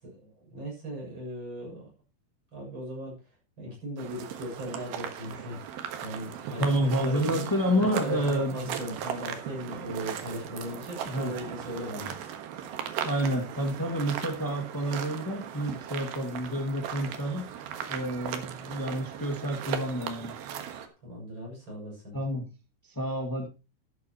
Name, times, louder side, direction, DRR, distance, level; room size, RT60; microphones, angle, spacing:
voice 1, 0.0-1.9 2.5-3.2 3.6-7.5 7.8-12.1 21.0-22.2, equal, 30° right, -1 dB, 7.8 m, -38 dB
sound 1, 4.0-20.9, right 9 dB, 75° right, 3.1 m, -38 dB
voice 2, 6.6-8.8 11.0-11.3 13.0-17.5 17.9-20.4 22.1-22.5 22.8-23.5, equal, 25° left, 2 dB, 0.4 m, -29 dB
13.0 x 12.0 x 3.0 m, 0.27 s
omnidirectional pair, 4.6 m